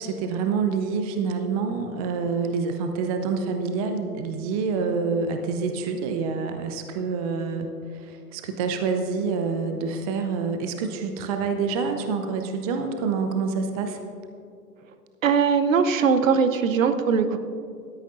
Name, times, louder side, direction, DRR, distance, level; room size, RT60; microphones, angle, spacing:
voice 1, 0.0-7.7 7.9-14.0 17.3-17.4, right 5 dB, 25° right, 6 dB, 0.6 m, -27 dB
voice 2, 15.2-17.4, right 6 dB, 55° right, 10 dB, 0.9 m, -20 dB
16.5 x 13.0 x 2.6 m, 2.5 s
figure-of-eight pair, 115°, 47 cm